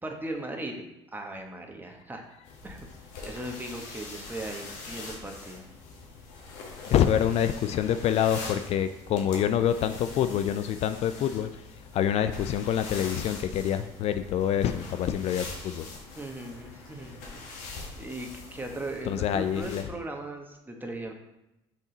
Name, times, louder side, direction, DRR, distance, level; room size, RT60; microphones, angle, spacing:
voice 1, 0.0-2.2 2.6-2.8 3.2-5.6 16.2-17.4 18.0-21.1, right 1 dB, 15° right, 2 dB, 1.2 m, -38 dB
sound 1, 2.4-19.8, left 3 dB, 75° left, 1.4 m, -43 dB
voice 2, 6.9-11.5 11.9-15.9 19.1-19.8, left 9 dB, 55° left, 10 dB, 0.4 m, -26 dB
6.0 x 4.2 x 4.0 m, 0.91 s
supercardioid pair, 70°, 13 cm